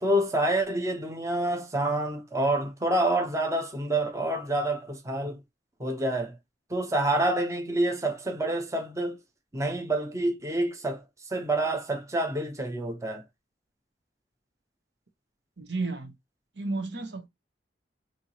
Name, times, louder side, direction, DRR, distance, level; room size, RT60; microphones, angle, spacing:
voice 1, 0.0-5.4 5.8-6.3 6.7-9.2 9.5-11.0 11.3-13.2, right 1 dB, 15° right, 0.7 m, -27 dB
voice 2, 15.6-16.1 16.6-17.3, right 3 dB, 70° right, 1.0 m, -32 dB
4.4 x 2.7 x 2.9 m
head